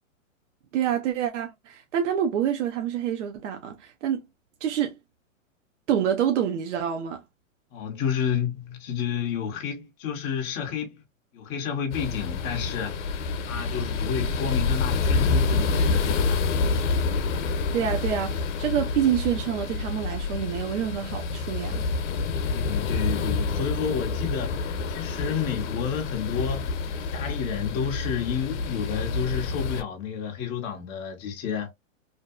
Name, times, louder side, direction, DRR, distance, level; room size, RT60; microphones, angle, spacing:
voice 1, 0.7-4.2 4.6-5.0 5.9-7.2 17.3-17.4 17.7-21.9, right 9 dB, 65° right, 0.6 m, -27 dB
voice 2, 7.7-11.0 11.3-16.4 22.4-26.7 27.0-31.7, left 7 dB, 20° left, 0.4 m, -30 dB
sound 1, 11.9-29.8, left 4 dB, 60° left, 0.7 m, -28 dB
2.6 x 2.2 x 2.2 m
hypercardioid pair, 130°, 40 cm